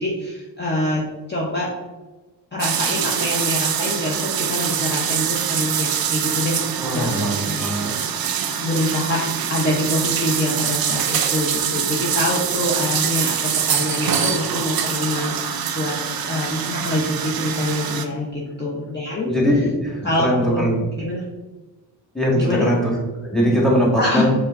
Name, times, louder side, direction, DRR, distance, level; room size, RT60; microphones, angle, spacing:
voice 1, 0.0-1.7 2.5-6.6 6.9-7.9 8.3-9.2 9.5-15.9 16.2-19.3 20.0-21.2 22.3-22.7 24.0-24.3, left 1 dB, 25° left, -4 dB, 0.7 m, -25 dB
sound 1, 2.6-18.1, right 8 dB, 50° right, 0.5 m, -24 dB
voice 2, 6.8-7.9 8.2-8.5 19.3-20.7 22.1-22.9 23.2-24.3, equal, ahead, -2 dB, 1.3 m, -21 dB
4.3 x 3.3 x 2.5 m, 1.2 s
cardioid pair, 50°, 46 cm